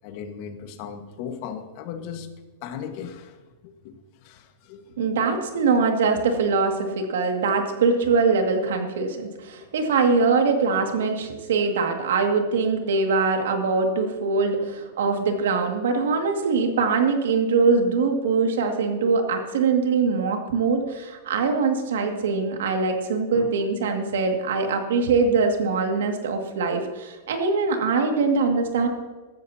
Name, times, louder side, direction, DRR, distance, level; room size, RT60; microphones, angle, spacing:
voice 1, 0.0-2.3 2.6-5.0 23.3-23.5, left 7 dB, 50° left, 6 dB, 1.5 m, -37 dB
voice 2, 5.0-28.9, right 4 dB, 85° right, 4 dB, 2.2 m, -22 dB
15.5 x 13.5 x 2.9 m, 1.3 s
supercardioid pair, 140°, 0 cm